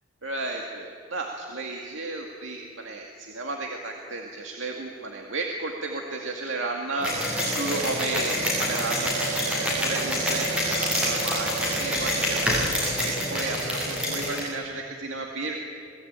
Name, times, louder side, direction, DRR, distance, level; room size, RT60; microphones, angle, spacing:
voice 1, 0.2-15.6, right 3 dB, 75° right, 1 dB, 2.2 m, -33 dB
sound 1, 7.0-14.4, equal, 5° right, 7.9 m, -26 dB
27.0 x 19.5 x 9.0 m, 2.2 s
head